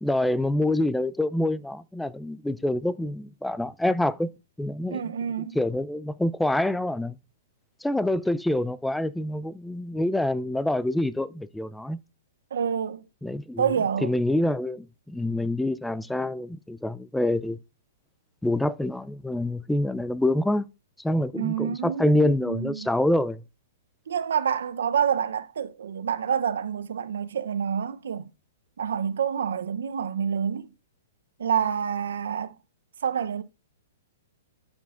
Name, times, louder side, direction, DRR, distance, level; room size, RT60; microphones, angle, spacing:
voice 1, 0.0-4.3 4.6-5.1 5.5-7.2 7.8-12.0 13.2-13.7 14.0-17.6 18.4-20.6 21.0-23.4, left 1 dB, 5° left, 0.3 m, -26 dB
voice 2, 4.9-5.6 12.5-13.0 13.6-14.1 21.3-22.9 24.1-28.3 28.8-30.7 31.4-32.6 33.0-33.4, right 8 dB, 80° right, 0.7 m, -27 dB
12.5 x 6.1 x 2.5 m
hypercardioid pair, 150°, 0 cm